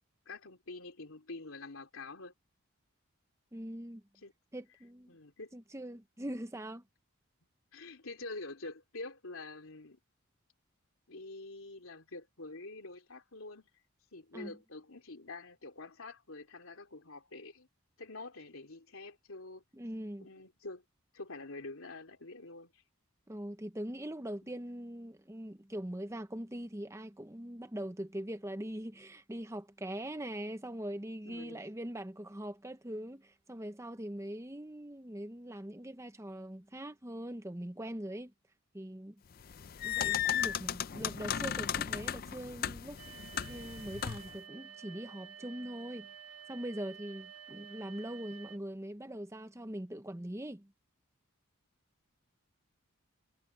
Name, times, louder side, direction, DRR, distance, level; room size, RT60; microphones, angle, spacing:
voice 1, 0.2-2.3 4.2-4.3 5.1-5.5 7.7-10.0 11.1-13.7 14.1-17.7 18.0-19.6 20.2-20.8 21.1-22.8 24.4-24.6 31.2-31.6, left 3 dB, 75° left, 3.1 m, -46 dB
voice 2, 3.5-4.0 4.5-5.1 5.5-6.8 14.3-14.5 19.7-20.3 23.3-38.3 38.7-39.2 39.8-46.1 46.5-50.7, right 1 dB, 15° right, 0.8 m, -42 dB
sound 1, 39.4-44.4, left 9 dB, 45° left, 0.5 m, -35 dB
sound 2, 43.0-48.6, right 8 dB, 90° right, 0.9 m, -51 dB
head